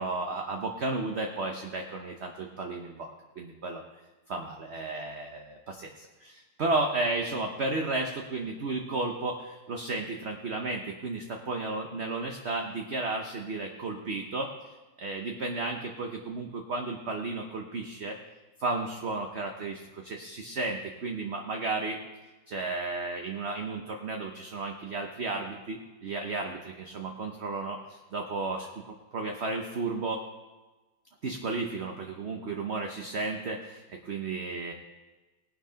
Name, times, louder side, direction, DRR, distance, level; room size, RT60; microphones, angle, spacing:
voice 1, 0.0-3.1 3.4-3.8 4.3-14.5 15.0-18.2 18.6-22.0 22.5-30.2 31.2-34.7, right 3 dB, 45° right, 3 dB, 1.0 m, -33 dB
19.0 x 6.5 x 5.7 m, 1.2 s
omnidirectional pair, 2.0 m